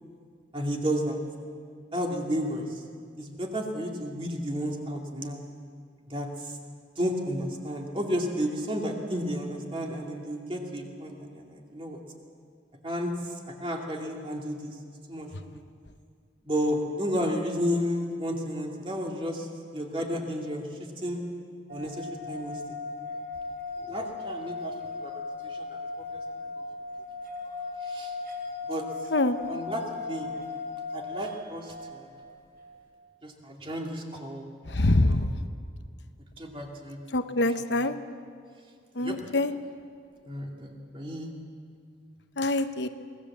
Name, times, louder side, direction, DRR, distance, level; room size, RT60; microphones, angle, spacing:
voice 1, 0.5-1.2 1.9-2.8 3.2-5.4 6.1-6.6 7.0-12.0 12.8-14.7 15.1-15.6 16.4-19.5 19.7-21.2 21.7-22.6 23.9-26.2 27.8-28.1 28.7-28.8 29.5-30.4 30.9-32.1 33.2-35.3 36.4-37.0 37.8-37.9 39.0-39.2 40.2-41.3, equal, 25° right, 1 dB, 2.5 m, -32 dB
sound 1, 21.7-32.9, left 3 dB, 50° right, 4.0 m, -37 dB
voice 2, 34.7-35.3 37.1-38.0 39.0-39.5 42.4-42.9, left 2 dB, 65° left, 9 dB, 0.9 m, -24 dB
24.0 x 18.5 x 7.4 m, 2.2 s
head